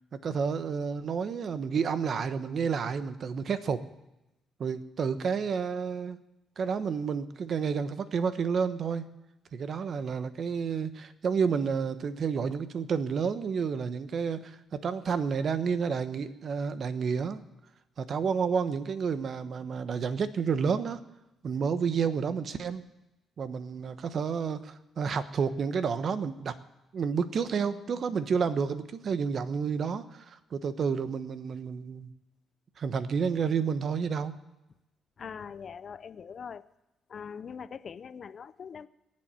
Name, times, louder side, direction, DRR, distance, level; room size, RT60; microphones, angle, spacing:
voice 1, 0.1-3.8 4.6-6.2 6.6-9.1 9.5-17.4 18.0-21.0 21.4-22.8 23.4-26.5 26.9-32.1 32.8-34.3, right 6 dB, 55° right, 12 dB, 1.1 m, -30 dB
voice 2, 35.2-36.7 37.1-38.9, left 6 dB, 50° left, 15 dB, 0.6 m, -42 dB
19.0 x 7.7 x 9.0 m, 0.94 s
cardioid pair, 90°, 0 cm